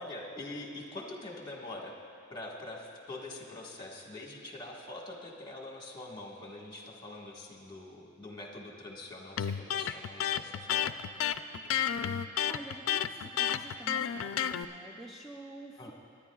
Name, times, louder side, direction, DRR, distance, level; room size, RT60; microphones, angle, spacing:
voice 1, 0.0-1.9 2.3-10.9 15.8-15.9, left 2 dB, 20° left, -1 dB, 1.5 m, -44 dB
Electric guitar, 9.4-14.6, left 9 dB, 70° left, 0.4 m, -31 dB
voice 2, 12.4-15.9, right 1 dB, ahead, -2 dB, 0.5 m, -48 dB
25.0 x 10.5 x 2.4 m, 2.4 s
head